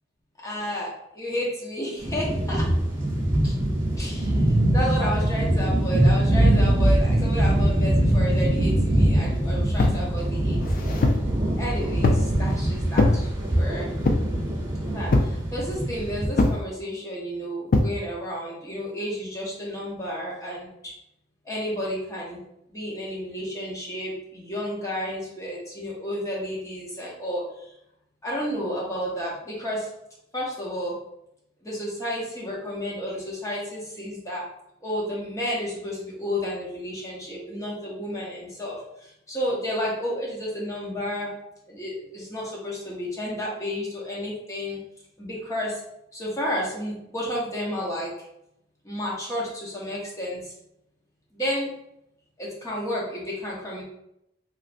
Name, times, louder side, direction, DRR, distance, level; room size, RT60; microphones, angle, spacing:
voice 1, 0.4-2.7 3.4-3.5 4.0-4.3 4.7-10.6 11.6-13.3 13.6-13.9 14.9-20.9 21.5-22.4 22.7-27.4 28.2-29.9 30.3-30.9 31.6-34.4 34.8-38.8 39.3-41.3 41.7-44.8 45.2-45.8 46.1-48.1 48.8-50.4 51.3-51.7 52.4-53.8, equal, 15° left, -5 dB, 0.8 m, -31 dB
sound 1, 2.0-16.3, right 1 dB, 25° right, 0.8 m, -23 dB
sound 2, 9.8-10.0 10.6-11.3 12.0-12.3 12.9-13.2 14.0-14.4 15.1-15.4 16.4-16.6 17.7-17.9, left 2 dB, 45° left, 0.3 m, -21 dB
3.1 x 2.5 x 2.5 m, 0.78 s
head